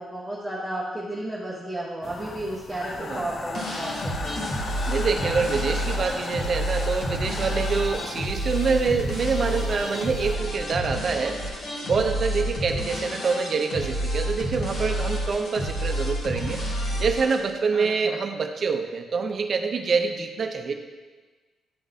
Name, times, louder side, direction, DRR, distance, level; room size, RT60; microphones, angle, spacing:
voice 1, 0.0-4.5 17.7-18.2, right 1 dB, 5° right, -7 dB, 1.1 m, -33 dB
sound 1, 2.0-10.4, left 3 dB, 40° left, 0.5 m, -36 dB
sound 2, 3.5-17.3, equal, 60° left, 1.7 m, -29 dB
voice 2, 4.9-11.4 11.8-16.6 17.0-20.7, right 5 dB, 45° right, 4 dB, 0.6 m, -26 dB
11.5 x 3.8 x 2.7 m, 1.3 s
cardioid pair, 90°, 0 cm